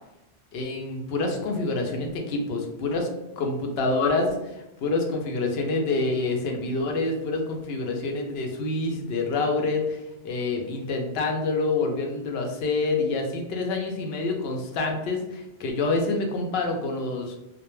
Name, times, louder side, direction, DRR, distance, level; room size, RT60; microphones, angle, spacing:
voice 1, 0.5-3.1 3.4-17.4, left 3 dB, 75° left, 2 dB, 0.8 m, -27 dB
2.1 x 2.1 x 3.0 m, 0.94 s
omnidirectional pair, 1.1 m